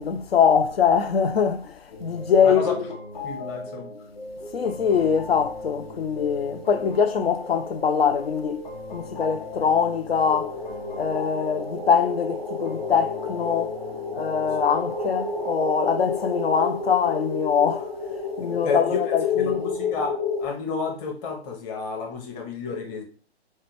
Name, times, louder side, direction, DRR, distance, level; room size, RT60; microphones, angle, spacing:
voice 1, 0.0-2.8 4.5-10.6 11.0-13.8 14.1-17.9 18.4-19.6, left 7 dB, 65° left, 0.5 m, -23 dB
sound 1, 1.9-16.4, left 1 dB, 45° left, 1.1 m, -38 dB
voice 2, 2.4-2.7 3.2-3.9 18.4-19.0 19.4-23.0, left 4 dB, 20° left, 0.9 m, -31 dB
sound 2, 10.3-20.5, left 4 dB, ahead, 0.6 m, -30 dB
4.6 x 2.2 x 4.6 m
figure-of-eight pair, 125°, 33 cm